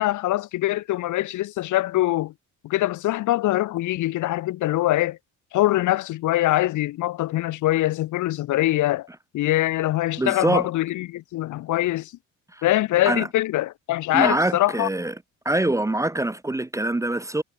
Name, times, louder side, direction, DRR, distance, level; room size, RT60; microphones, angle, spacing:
voice 1, 0.0-2.3 2.6-5.2 5.5-9.1 9.3-12.1 12.6-14.9, left 15 dB, 75° left, 0.8 m, -23 dB
voice 2, 10.2-10.7 12.5-12.6 13.0-13.3 14.1-15.1 15.5-17.4, right 1 dB, 10° right, 0.6 m, -24 dB
cardioid pair, 90°, 30 cm